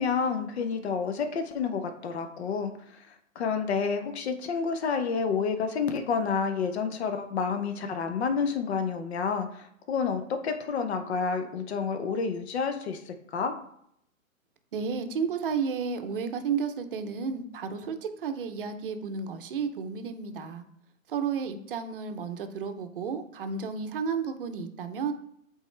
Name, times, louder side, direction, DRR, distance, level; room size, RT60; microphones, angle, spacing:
voice 1, 0.0-2.7 3.1-13.5, left 5 dB, 50° left, 7 dB, 0.9 m, -29 dB
voice 2, 14.7-20.6 21.1-25.1, right 6 dB, 40° right, 8 dB, 0.7 m, -32 dB
8.1 x 3.6 x 3.3 m, 0.71 s
hypercardioid pair, 150°, 41 cm